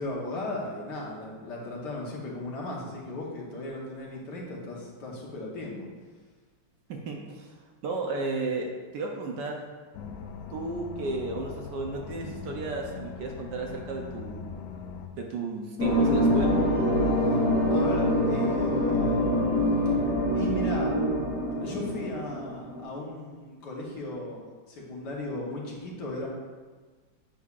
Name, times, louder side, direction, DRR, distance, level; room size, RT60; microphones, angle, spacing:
voice 1, 0.0-5.9 17.7-19.3 19.8-20.0 20.3-20.9 21.6-26.3, left 1 dB, 60° left, -3 dB, 1.7 m, -36 dB
voice 2, 6.9-7.6 7.8-9.6 10.5-14.5 15.1-16.6, right 3 dB, 70° right, 1 dB, 1.2 m, -34 dB
sound 1, 9.9-15.1, left 6 dB, 80° left, 1.3 m, -41 dB
sound 2, 15.8-22.8, equal, 35° left, 1.1 m, -25 dB
8.2 x 6.3 x 2.4 m, 1.4 s
omnidirectional pair, 2.2 m